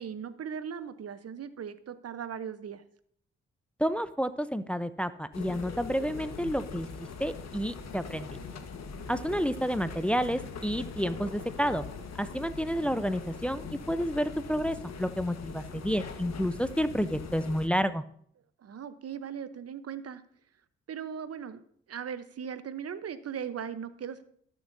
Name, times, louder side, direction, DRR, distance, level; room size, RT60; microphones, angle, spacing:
voice 1, 0.0-2.8 18.6-20.2 20.9-21.6 21.9-24.3, right 7 dB, 55° right, 13 dB, 0.9 m, -38 dB
voice 2, 3.8-6.9 7.2-8.4 9.1-11.8 12.2-18.0, equal, 5° left, 12 dB, 0.7 m, -30 dB
sound 1, 5.3-17.7, left 5 dB, 60° left, 1.4 m, -42 dB
19.0 x 7.0 x 2.7 m, 0.64 s
hypercardioid pair, 40°, 30 cm